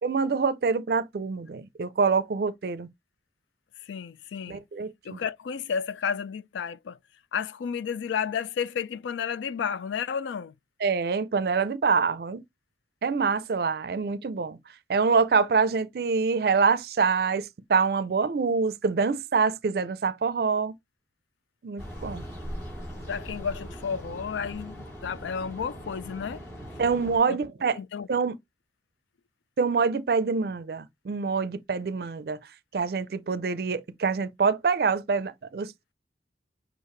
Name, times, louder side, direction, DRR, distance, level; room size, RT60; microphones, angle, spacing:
voice 1, 0.0-2.9 4.5-5.2 10.8-12.4 13.0-14.6 14.9-20.7 21.6-22.2 26.8-27.8 28.1-28.4 29.6-32.4 32.7-35.9, right 5 dB, 55° right, 0.4 m, -25 dB
voice 2, 3.9-4.6 5.0-7.0 7.3-10.5 23.1-26.4 27.3-27.4 27.7-28.1, left 7 dB, 85° left, 0.4 m, -32 dB
sound 1, 21.8-27.2, equal, 15° left, 3.2 m, -40 dB
6.5 x 2.4 x 3.1 m
head